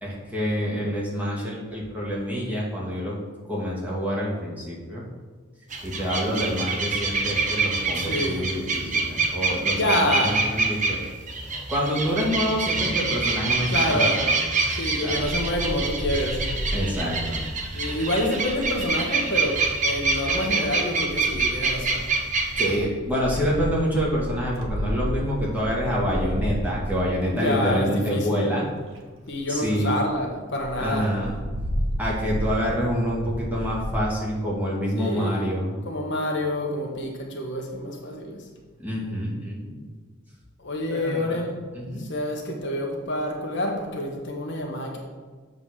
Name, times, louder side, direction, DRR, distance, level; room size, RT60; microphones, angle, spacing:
voice 1, 0.0-3.2 3.5-5.1 5.8-11.0 11.7-14.3 15.0-15.3 16.7-17.4 22.6-28.7 29.5-29.9 30.8-31.3 32.0-35.7 38.8-39.8 40.9-42.0, equal, 10° right, -5 dB, 2.0 m, -27 dB
sound 1, 5.7-22.8, right 3 dB, 40° right, 1.0 m, -26 dB
voice 2, 7.9-8.5 9.7-10.4 12.7-12.8 13.7-14.3 14.8-16.7 17.7-22.1 27.3-28.5 29.3-31.1 35.0-35.5 35.8-38.5 40.6-41.5 42.0-45.0, left 1 dB, 65° left, 1 dB, 1.2 m, -27 dB
Wind, 15.1-18.7 19.8-20.3 21.0-28.0 28.6-28.7 28.9-29.0 29.3-29.4 29.7-29.8 30.0-30.2 30.6-34.0, equal, 80° right, 1.2 m, -32 dB
7.4 x 3.9 x 6.4 m, 1.5 s
head